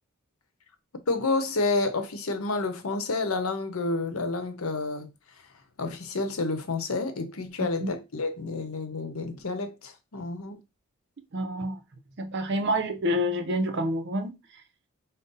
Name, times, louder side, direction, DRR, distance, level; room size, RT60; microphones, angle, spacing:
voice 1, 1.1-5.1 5.8-10.6, left 3 dB, 75° left, 0.8 m, -29 dB
voice 2, 11.3-11.8 12.2-14.4, equal, 50° right, 0.6 m, -28 dB
5.3 x 2.1 x 3.9 m
head